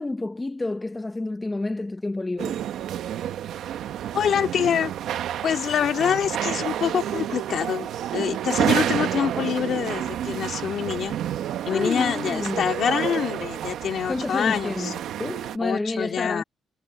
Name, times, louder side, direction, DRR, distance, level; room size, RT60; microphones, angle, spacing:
voice 1, 0.0-2.7 11.7-12.6 14.1-16.4, left 2 dB, 15° left, 0.7 m, -29 dB
sound 1, 2.4-15.6, right 10 dB, 75° right, 1.0 m, -29 dB
voice 2, 4.1-4.9 5.4-11.1 11.7-14.9 15.6-16.4, left 8 dB, 55° left, 2.5 m, -25 dB
cardioid pair, 140°, 0 cm